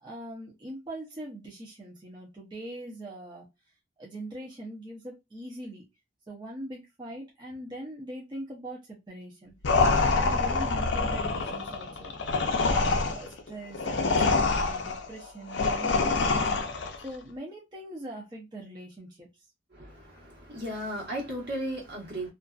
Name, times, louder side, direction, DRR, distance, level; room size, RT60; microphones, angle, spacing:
voice 1, 0.0-3.5 4.0-5.9 6.3-9.5 10.0-12.1 12.6-16.7 17.0-19.3, right 1 dB, 25° right, 0.6 m, -42 dB
sound 1, 9.6-17.0, left 3 dB, 65° left, 0.5 m, -26 dB
voice 2, 19.7-22.3, right 1 dB, 60° right, 1.2 m, -35 dB
2.5 x 2.4 x 2.3 m
head